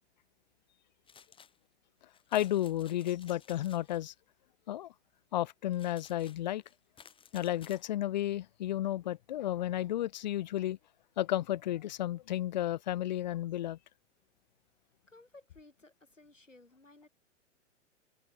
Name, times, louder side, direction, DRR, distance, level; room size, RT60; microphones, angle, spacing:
sound 1, 1.1-1.6 2.1-4.0 5.7-7.9, left 7 dB, 15° left, 3.4 m, -57 dB
voice 1, 2.3-4.1 4.7-4.9 5.3-6.6 7.3-10.8 11.2-13.8, left 13 dB, 40° left, 0.4 m, -32 dB
voice 2, 15.1-17.1, left 2 dB, 85° left, 7.8 m, -57 dB
figure-of-eight pair, 105°, 37 cm